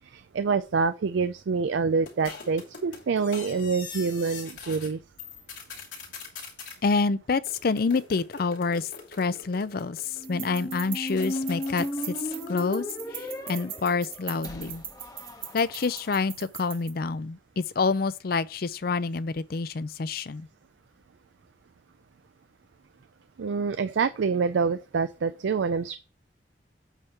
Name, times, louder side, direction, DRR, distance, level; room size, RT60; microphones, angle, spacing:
voice 1, 0.1-5.0 23.4-26.0, right 5 dB, 90° right, 0.4 m, -26 dB
sound 1, 2.1-4.9 5.2-6.8 7.5-10.4 11.1-12.6, left 5 dB, 85° left, 2.8 m, -43 dB
voice 2, 6.8-8.9 9.2-14.8 15.5-20.5, left 4 dB, 55° left, 0.5 m, -28 dB
Squeak, 10.2-16.1, left 1 dB, 20° left, 1.0 m, -36 dB
sound 2, 10.2-16.9, right 10 dB, 55° right, 1.1 m, -41 dB
8.2 x 3.6 x 5.6 m
head